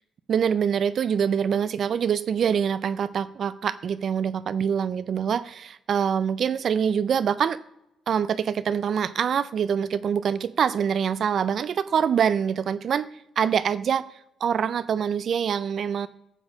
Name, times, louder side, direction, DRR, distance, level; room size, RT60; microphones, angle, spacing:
voice 1, 0.3-7.6 8.1-13.1 13.4-14.1 14.4-16.1, right 7 dB, 60° right, 14 dB, 0.4 m, -25 dB
12.0 x 6.3 x 7.3 m, 0.84 s
cardioid pair, 90°, 0 cm